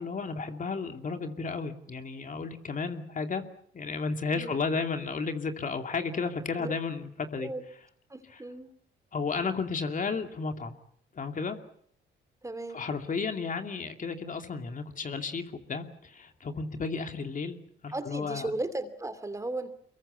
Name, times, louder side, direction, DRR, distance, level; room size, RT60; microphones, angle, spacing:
voice 1, 0.0-3.4 3.7-7.5 8.3-8.4 9.1-10.7 11.1-11.6 12.7-17.6 17.8-18.5, left 4 dB, 40° left, 6 dB, 2.5 m, -33 dB
voice 2, 8.1-8.7 12.4-12.8 17.9-19.7, right 2 dB, 15° right, 11 dB, 2.7 m, -35 dB
25.0 x 22.0 x 8.3 m, 0.66 s
cardioid pair, 90°, 20 cm